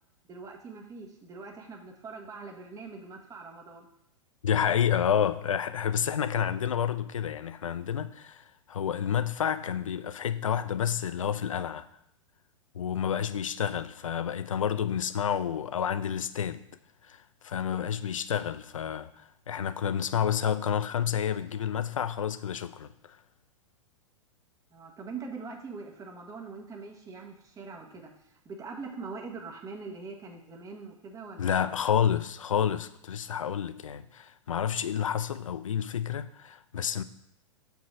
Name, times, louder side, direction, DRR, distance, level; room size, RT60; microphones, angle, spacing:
voice 1, 0.3-3.9 24.7-28.1 28.4-31.8, right 4 dB, 20° right, 1.4 m, -42 dB
voice 2, 4.4-11.9 12.7-16.6 17.1-23.2 31.4-37.0, left 8 dB, 75° left, 0.5 m, -29 dB
7.4 x 4.5 x 4.8 m
figure-of-eight pair, 100°, 17 cm